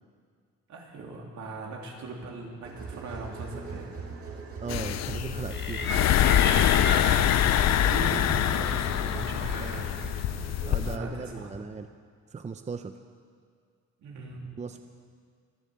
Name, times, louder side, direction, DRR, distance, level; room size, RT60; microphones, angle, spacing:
voice 1, 0.7-3.9 7.8-10.1 10.8-11.6 14.0-14.6, right 2 dB, 70° right, -1 dB, 3.2 m, -39 dB
sound 1, 2.6-11.2, right 4 dB, 50° right, 2.7 m, -41 dB
voice 2, 4.6-6.2 10.7-11.9 12.3-12.9 14.6-14.8, right 5 dB, 25° right, 8 dB, 0.7 m, -37 dB
sound 2, 4.7-11.0, left 11 dB, 60° left, 0.6 m, -25 dB
sound 3, 5.5-10.3, left 4 dB, 35° left, 1.8 m, -34 dB
24.0 x 8.3 x 7.0 m, 2.1 s
cardioid pair, 90°, 30 cm